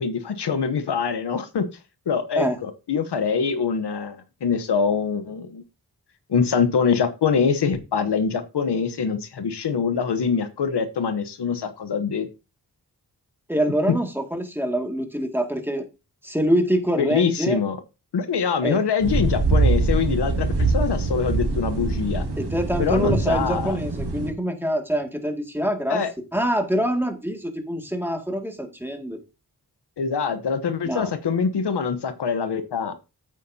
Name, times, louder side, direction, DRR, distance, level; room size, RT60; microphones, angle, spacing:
voice 1, 0.0-1.7 2.1-5.6 6.3-12.3 17.0-17.8 18.1-22.2 22.8-23.8 25.9-26.1 30.0-32.9, left 6 dB, 85° left, 10 dB, 1.0 m, -24 dB
voice 2, 13.5-15.9 16.2-17.6 18.6-18.8 22.4-26.0 26.3-29.2 30.9-31.1, equal, 5° right, 5 dB, 2.0 m, -25 dB
sound 1, 19.0-24.3, right 3 dB, 80° right, 2.1 m, -23 dB
8.4 x 8.4 x 2.7 m, 0.28 s
cardioid pair, 55°, 39 cm